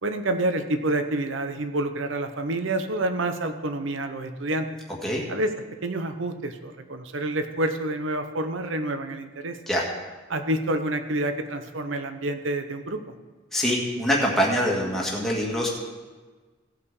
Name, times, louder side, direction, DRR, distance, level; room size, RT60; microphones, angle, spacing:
voice 1, 0.0-4.7 5.3-5.5 5.8-9.6 10.3-13.1, right 1 dB, 70° right, 8 dB, 0.8 m, -28 dB
voice 2, 13.5-15.7, equal, ahead, -3 dB, 1.7 m, -24 dB
16.5 x 5.8 x 4.8 m, 1.4 s
head